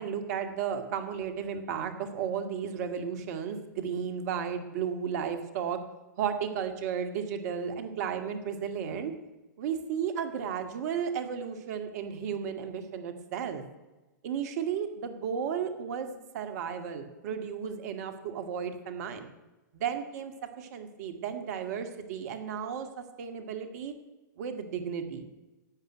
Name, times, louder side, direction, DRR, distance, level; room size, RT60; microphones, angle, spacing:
voice 1, 0.0-5.8 6.2-9.1 9.6-13.6 14.2-19.3 19.7-23.9 24.4-25.2, right 7 dB, 55° right, 6 dB, 2.2 m, -34 dB
12.5 x 8.1 x 9.5 m, 1.1 s
hypercardioid pair, 110°, 10 cm